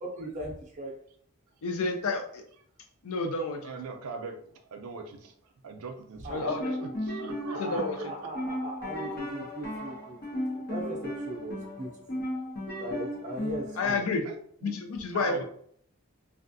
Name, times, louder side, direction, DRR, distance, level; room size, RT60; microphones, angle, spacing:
voice 1, 0.0-0.9 6.2-6.6 7.5-12.2 12.8-14.1, right 1 dB, 35° right, -1 dB, 0.6 m, -38 dB
voice 2, 1.6-2.4 3.0-3.6 6.3-6.7 7.6-8.0 13.8-14.2 14.6-15.4, left 3 dB, 70° left, 5 dB, 0.5 m, -30 dB
voice 3, 3.6-8.3 13.9-14.7 15.1-15.4, right 4 dB, 85° right, 5 dB, 0.5 m, -41 dB
sound 1, 6.4-13.8, left 1 dB, 45° left, 0.8 m, -35 dB
3.4 x 2.3 x 2.6 m, 0.62 s
head